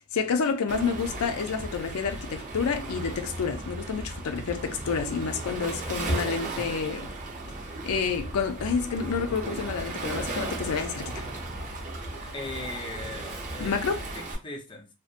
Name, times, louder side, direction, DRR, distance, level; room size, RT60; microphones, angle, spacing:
voice 1, 0.1-7.1 7.8-11.2 13.6-14.0, left 5 dB, 90° left, 0.4 m, -29 dB
Waves surf, 0.7-14.3, right 2 dB, 35° right, 0.6 m, -35 dB
voice 2, 5.4-6.5 12.3-14.9, left 2 dB, 25° left, 0.4 m, -40 dB
2.6 x 2.0 x 2.4 m
head